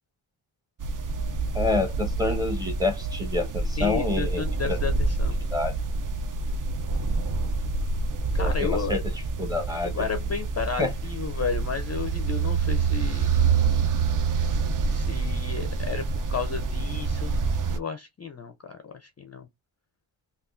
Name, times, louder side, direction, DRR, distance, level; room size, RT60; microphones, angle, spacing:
sound 1, 0.8-17.8, right 4 dB, 45° right, 0.4 m, -27 dB
voice 1, 1.5-4.8 5.5-5.7 8.4-9.0 9.4-10.0 10.8-10.9, left 3 dB, 10° right, 0.9 m, -28 dB
voice 2, 3.8-5.4 8.3-9.0 9.8-13.3 14.9-17.4 17.7-19.5, left 6 dB, 35° left, 0.4 m, -33 dB
3.5 x 2.4 x 2.4 m
wide cardioid pair, 150°, 49 cm